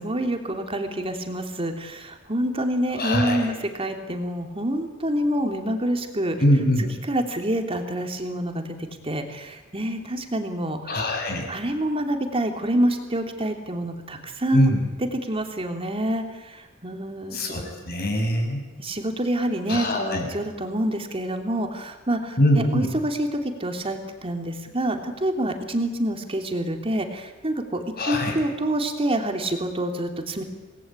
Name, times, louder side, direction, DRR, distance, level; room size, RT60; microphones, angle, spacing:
voice 1, 0.0-6.3 7.1-8.6 9.0-10.9 11.5-14.7 15.3-17.4 18.8-22.4 22.7-30.4, right 1 dB, 25° right, 4 dB, 3.0 m, -27 dB
voice 2, 3.0-3.5 6.4-6.8 10.9-11.5 14.5-14.8 17.3-18.6 19.7-20.3 22.4-22.9 28.0-28.4, left 1 dB, 50° left, 3 dB, 6.8 m, -22 dB
27.5 x 19.5 x 9.0 m, 1.2 s
head